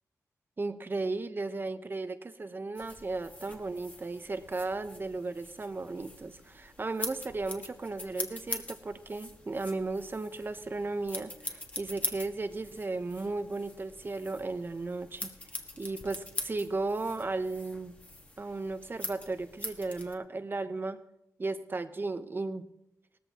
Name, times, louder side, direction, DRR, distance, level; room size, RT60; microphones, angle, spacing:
voice 1, 0.6-15.3 15.8-18.0 18.4-21.0 21.4-22.7, right 3 dB, 35° right, 10 dB, 0.8 m, -35 dB
sound 1, 2.7-20.1, left 1 dB, 25° left, 1.5 m, -43 dB
18.0 x 14.0 x 2.9 m, 0.83 s
wide cardioid pair, 95°, 6 cm